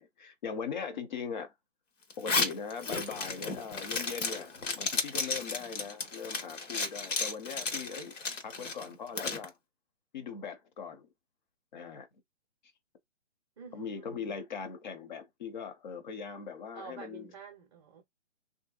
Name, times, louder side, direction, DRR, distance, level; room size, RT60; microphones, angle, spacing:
voice 1, 0.0-1.5 2.2-8.1 8.4-9.5 10.1-11.1 11.7-12.1 13.7-17.3, left 6 dB, 40° left, 0.7 m, -40 dB
Zipper (clothing), 2.1-9.5, left 4 dB, 80° left, 1.2 m, -34 dB
voice 2, 13.6-14.4 16.7-18.0, right 5 dB, 25° right, 0.6 m, -49 dB
3.0 x 2.7 x 2.3 m
hypercardioid pair, 155°, 37 cm